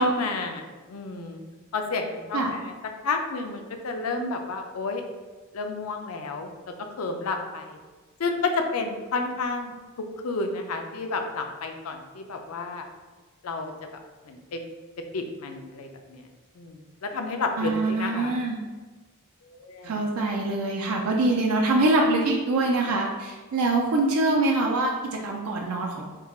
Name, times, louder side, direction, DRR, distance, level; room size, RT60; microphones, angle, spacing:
voice 1, 0.0-1.4 1.7-2.6 3.0-5.0 5.5-6.5 7.0-7.8 8.2-9.7 10.2-12.9 13.4-13.7 14.3-14.6 15.1-16.2 16.6-18.4 19.5-20.0, left 3 dB, 85° left, 5 dB, 0.5 m, -30 dB
voice 2, 17.6-18.6 19.8-24.9 25.2-26.1, right 2 dB, 85° right, 0 dB, 0.4 m, -24 dB
3.7 x 2.3 x 4.2 m, 1.3 s
head